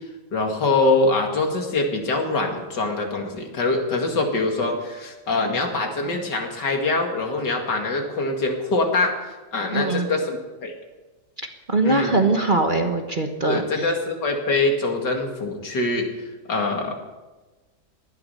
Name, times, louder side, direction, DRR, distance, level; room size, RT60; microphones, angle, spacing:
voice 1, 0.3-9.2 9.5-10.8 11.8-12.3 13.4-16.1 16.5-16.9, left 2 dB, 75° left, 3 dB, 2.8 m, -24 dB
voice 2, 9.7-10.1 11.7-13.9, right 2 dB, 30° right, 4 dB, 1.3 m, -22 dB
19.0 x 12.5 x 5.6 m, 1.2 s
omnidirectional pair, 1.9 m